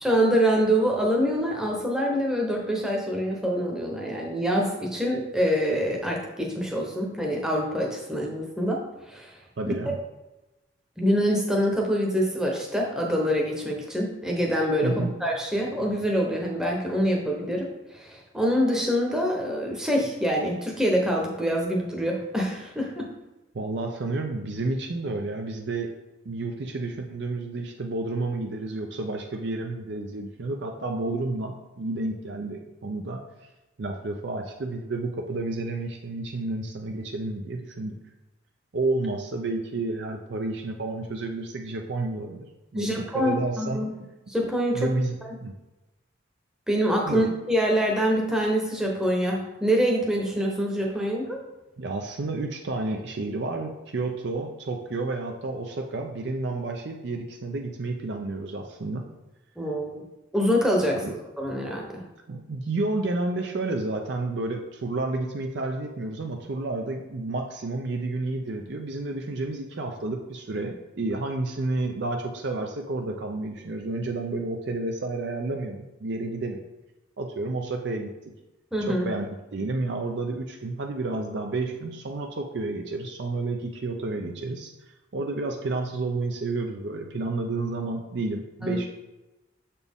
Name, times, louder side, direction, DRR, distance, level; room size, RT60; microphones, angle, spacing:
voice 1, 0.0-8.8 9.1-9.4 9.6-9.9 11.0-14.9 15.2-17.7 17.9-23.1 42.7-43.9 44.3-44.9 46.7-51.4 59.6-60.0 60.3-62.0 78.7-79.0 88.6-88.8, equal, 5° right, -1 dB, 0.9 m, -25 dB
voice 2, 9.6-10.0 14.8-15.1 23.5-25.9 26.2-33.5 33.8-38.0 38.7-43.8 44.7-45.1 45.4-45.5 47.0-47.3 51.8-59.1 60.9-61.2 62.3-76.6 77.2-78.1 78.9-88.9, right 2 dB, 60° right, 2 dB, 0.5 m, -30 dB
6.9 x 4.2 x 3.5 m, 1.0 s
head